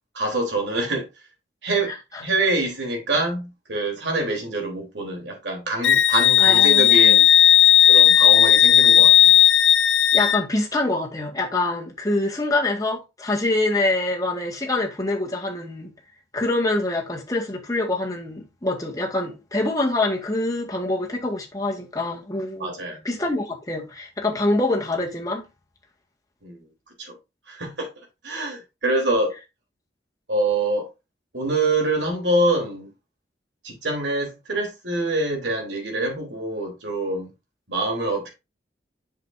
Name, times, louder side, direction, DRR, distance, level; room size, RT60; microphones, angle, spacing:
voice 1, 0.1-1.1 1.6-1.9 2.2-7.3 7.9-9.4 22.6-23.0 26.4-26.7 27.0-27.2 27.5-27.9 28.2-29.4 30.3-30.9 31.3-32.9 33.6-37.3 37.7-38.3, right 2 dB, 80° right, 3.7 m, -25 dB
voice 2, 1.9-2.2 6.4-7.2 10.1-15.9 16.3-22.7 23.0-25.4, left 2 dB, 20° left, 1.9 m, -25 dB
Wind instrument woodwind instrument, 5.8-10.4, left 10 dB, 85° left, 0.7 m, -14 dB
8.0 x 6.4 x 2.7 m
head